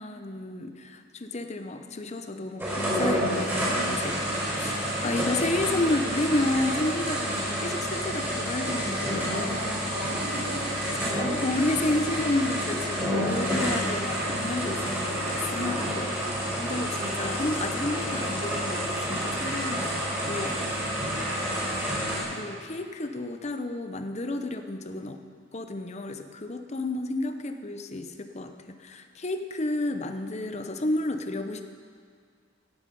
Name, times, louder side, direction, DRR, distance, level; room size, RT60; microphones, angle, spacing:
voice 1, 0.0-4.2 4.6-4.8 5.0-9.7 10.8-16.0 16.6-20.6 22.3-25.2 25.5-31.6, left 2 dB, 30° left, 7 dB, 0.7 m, -31 dB
sound 1, 2.6-22.2, equal, 10° right, 4.3 m, -29 dB
voice 2, 3.7-4.0 4.3-4.5 9.2-10.7 15.5-16.0 20.6-21.4, equal, 50° right, -5 dB, 3.3 m, -39 dB
16.5 x 9.1 x 5.4 m, 2.1 s
head